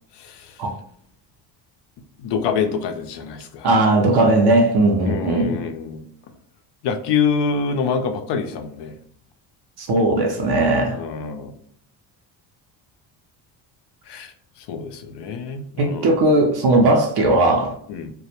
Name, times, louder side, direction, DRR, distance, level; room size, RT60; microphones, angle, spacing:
voice 1, 0.1-0.6 2.2-3.7 5.0-6.1 6.8-8.9 10.9-11.6 14.1-16.1 17.9-18.1, left 6 dB, 60° left, 7 dB, 0.5 m, -26 dB
voice 2, 3.6-5.6 9.8-11.0 15.8-17.7, right 2 dB, 55° right, 2 dB, 0.6 m, -17 dB
2.2 x 2.1 x 2.8 m, 0.63 s
cardioid pair, 90°, 47 cm